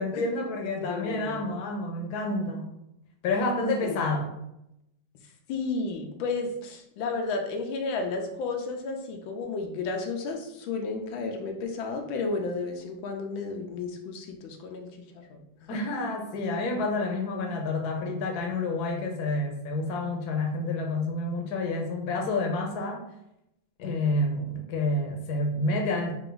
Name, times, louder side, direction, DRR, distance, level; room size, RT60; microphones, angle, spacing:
voice 1, 0.0-2.7 3.2-4.3 15.7-23.0 23.8-26.1, left 2 dB, 65° left, 2 dB, 1.2 m, -29 dB
voice 2, 0.8-1.5 3.8-4.3 5.5-15.8, left 3 dB, 90° left, 3 dB, 1.5 m, -33 dB
4.8 x 2.5 x 3.8 m, 0.83 s
omnidirectional pair, 2.1 m